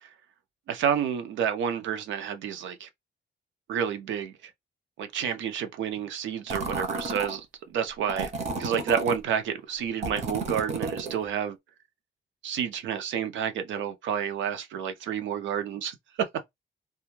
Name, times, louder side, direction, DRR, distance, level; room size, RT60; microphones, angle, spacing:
voice 1, 0.7-2.9 3.7-4.5 5.0-8.3 8.6-11.6 12.4-16.3, right 8 dB, 90° right, 0.6 m, -30 dB
sound 1, 6.5-7.4 8.1-9.2 10.0-11.2, right 3 dB, 35° right, 0.6 m, -32 dB
2.2 x 2.1 x 3.0 m
cardioid pair, 175°, 19 cm